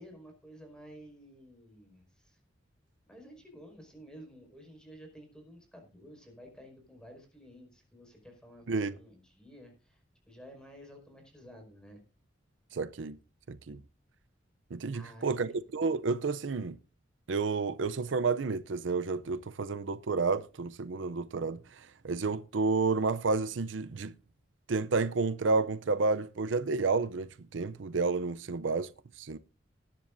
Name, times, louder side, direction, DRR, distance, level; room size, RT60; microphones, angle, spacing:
voice 1, 0.0-2.4 3.1-10.0 10.3-12.0 13.7-13.8 14.9-15.6, equal, 5° left, 5.1 m, -52 dB
voice 2, 12.7-13.2 13.5-13.8 14.7-16.8 17.3-24.1 24.7-28.9 29.2-29.4, right 4 dB, 80° right, 0.5 m, -30 dB
19.5 x 10.5 x 2.6 m
head